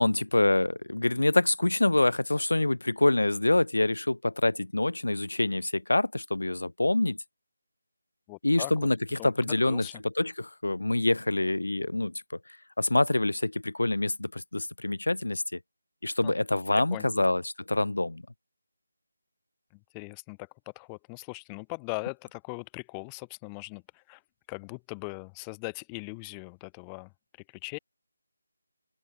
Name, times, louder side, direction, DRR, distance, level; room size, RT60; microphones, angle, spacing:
voice 1, 0.0-7.2 8.4-12.1 12.8-15.6 16.0-18.2, left 2 dB, 90° left, 0.4 m, -26 dB
voice 2, 8.3-8.7 9.2-10.0 16.2-16.3 16.7-17.2 19.7-20.5 20.7-24.2 24.5-27.1 27.5-27.8, left 37 dB, 15° left, 0.9 m, -40 dB
figure-of-eight pair, 165°, 0 cm